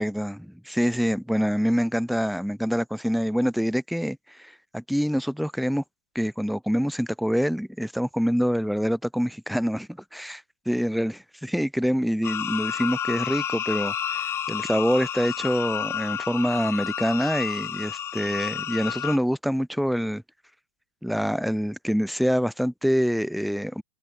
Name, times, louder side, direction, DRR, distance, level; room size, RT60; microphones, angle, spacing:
voice 1, 0.0-5.8 6.1-20.2 21.0-23.8, equal, ahead, 4.2 m, -26 dB
sound 1, 12.2-19.2, left 9 dB, 30° left, 5.8 m, -31 dB
hypercardioid pair, 115°, 8 cm